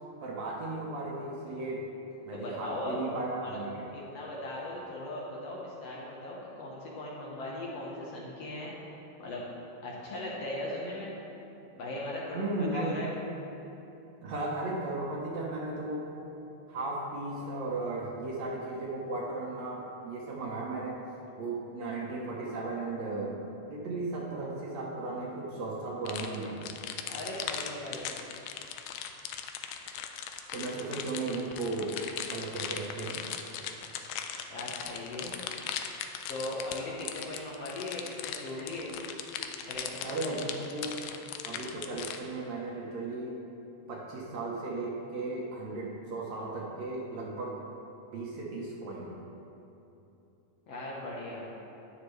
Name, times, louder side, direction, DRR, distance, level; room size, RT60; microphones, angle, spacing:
voice 1, 0.2-1.9 2.3-3.7 12.3-13.0 14.2-16.1 16.7-21.0 21.4-23.3 23.7-26.6 30.5-32.0 32.3-33.3 40.0-41.0 41.5-43.4 43.9-47.6 48.1-49.1, right 2 dB, 65° right, -3 dB, 2.0 m, -35 dB
voice 2, 2.3-3.0 3.4-3.6 3.9-8.7 9.2-9.4 9.8-11.1 11.8-13.1 27.1-28.1 34.5-35.3 36.3-38.9 39.7-40.4 50.7-51.5, left 1 dB, 60° left, -4 dB, 1.9 m, -38 dB
sound 1, 26.1-42.2, left 9 dB, 80° left, 2.0 m, -39 dB
11.5 x 9.5 x 3.2 m, 2.9 s
omnidirectional pair, 3.7 m